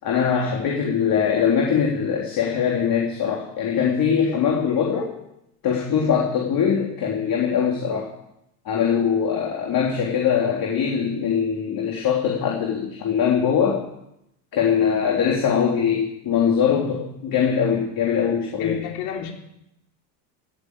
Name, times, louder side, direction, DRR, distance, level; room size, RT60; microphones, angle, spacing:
voice 1, 0.0-5.1 5.6-8.1 8.7-13.8 14.5-18.8, left 7 dB, 45° left, -3 dB, 3.8 m, -22 dB
voice 2, 18.6-19.3, left 8 dB, 65° left, 2 dB, 3.6 m, -31 dB
17.5 x 8.5 x 8.3 m, 0.80 s
supercardioid pair, 100°, 49 cm